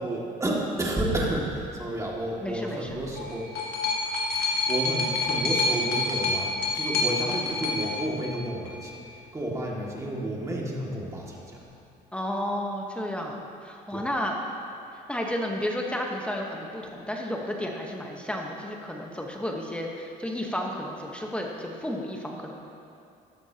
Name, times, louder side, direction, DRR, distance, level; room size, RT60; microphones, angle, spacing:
voice 1, 0.0-3.5 4.3-11.6 13.9-14.1, right 1 dB, 20° right, -3 dB, 2.1 m, -31 dB
voice 2, 2.4-2.9 12.1-13.4 13.6-14.4 15.1-22.5, left 1 dB, 5° left, 0 dB, 1.1 m, -32 dB
sound 1, 2.9-8.9 9.8-9.9, left 3 dB, 75° left, 1.7 m, -28 dB
14.5 x 11.5 x 2.9 m, 2.6 s
cardioid pair, 110°, 17 cm